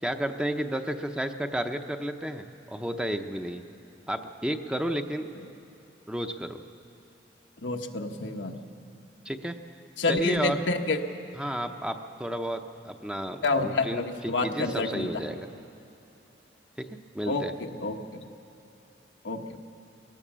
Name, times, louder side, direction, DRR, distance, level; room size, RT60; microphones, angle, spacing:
voice 1, 0.0-3.6 4.1-5.3 6.1-6.6 9.2-9.6 10.1-10.6 11.3-15.5 16.8-16.9 17.1-17.5, right 1 dB, 5° right, 6 dB, 0.7 m, -32 dB
voice 2, 7.6-8.5 10.0-11.0 13.4-15.1 17.3-18.0 19.2-19.6, left 3 dB, 90° left, 3 dB, 1.2 m, -28 dB
20.0 x 18.0 x 7.4 m, 3.0 s
head